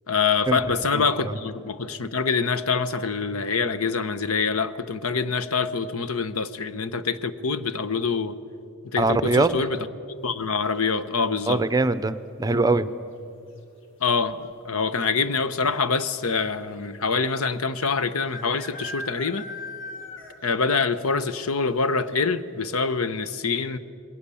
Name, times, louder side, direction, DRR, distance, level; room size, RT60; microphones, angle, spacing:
voice 1, 0.1-8.4 8.9-9.8 10.2-11.6 14.0-19.4 20.4-23.8, left 5 dB, 80° left, 13 dB, 1.0 m, -25 dB
voice 2, 0.9-1.4 9.0-9.5 11.5-12.9, right 2 dB, 15° right, 13 dB, 0.7 m, -22 dB
sound 1, 10.7-11.2 13.0-13.4 13.7-13.8 14.0-14.5 15.3-15.4 15.6-15.7 17.3-17.4 18.3-20.6 20.9-21.0 21.5-21.6 22.1-22.2, left 2 dB, 60° left, 3.1 m, -39 dB
27.5 x 21.5 x 7.1 m, 2.6 s
head